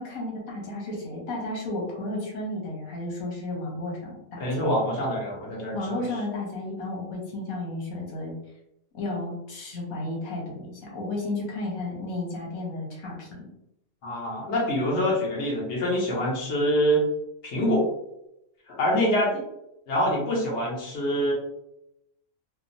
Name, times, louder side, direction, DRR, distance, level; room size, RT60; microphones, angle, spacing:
voice 1, 0.0-4.4 5.7-8.4 8.9-13.5, left 2 dB, 85° left, -3 dB, 1.3 m, -33 dB
voice 2, 4.4-5.8 14.0-17.0 17.4-17.8 18.7-19.4 19.9-21.3, equal, 60° left, -3 dB, 1.1 m, -25 dB
2.9 x 2.1 x 2.6 m, 0.82 s
omnidirectional pair, 1.4 m